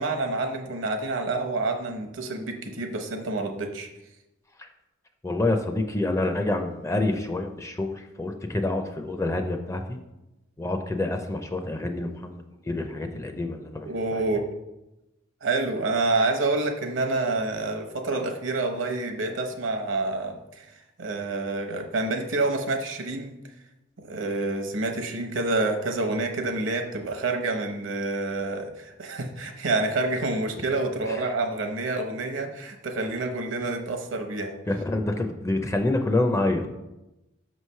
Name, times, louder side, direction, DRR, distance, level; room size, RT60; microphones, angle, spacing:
voice 1, 0.0-3.9 13.9-14.5 15.4-23.4 24.0-34.5, right 2 dB, 70° right, 4 dB, 0.8 m, -28 dB
voice 2, 5.2-10.0 10.6-13.9 14.1-14.2 31.1-31.2 34.7-36.7, left 2 dB, 15° left, 5 dB, 0.4 m, -27 dB
5.9 x 3.1 x 5.5 m, 0.97 s
head